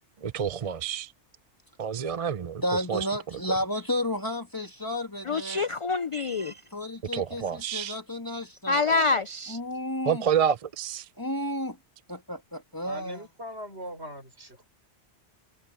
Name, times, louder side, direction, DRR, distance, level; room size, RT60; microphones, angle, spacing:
voice 1, 0.2-1.1 1.8-2.6 2.9-3.1 7.1-8.0 10.1-11.1, right 8 dB, 40° right, 0.5 m, -28 dB
voice 2, 2.6-5.7 6.7-9.1 9.5-10.2 11.2-11.8 12.1-13.2, left 1 dB, 15° left, 2.1 m, -32 dB
voice 3, 5.3-6.6 8.7-9.6, left 4 dB, 50° left, 0.3 m, -26 dB
voice 4, 12.8-14.7, equal, 65° right, 6.8 m, -41 dB
omnidirectional pair, 1.2 m